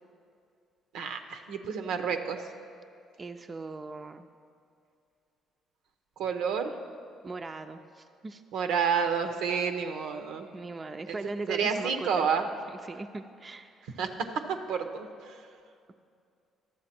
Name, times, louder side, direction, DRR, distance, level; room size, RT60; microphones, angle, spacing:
voice 1, 0.9-2.4 6.2-6.8 8.5-10.5 11.1-11.2 11.5-12.5 14.0-14.1 14.7-15.4, right 6 dB, 80° right, 6 dB, 0.6 m, -29 dB
voice 2, 3.2-4.3 7.2-8.4 10.5-12.2 12.7-14.0, right 3 dB, 35° right, 7 dB, 0.4 m, -39 dB
12.0 x 7.5 x 4.3 m, 2.4 s
supercardioid pair, 60°, 0 cm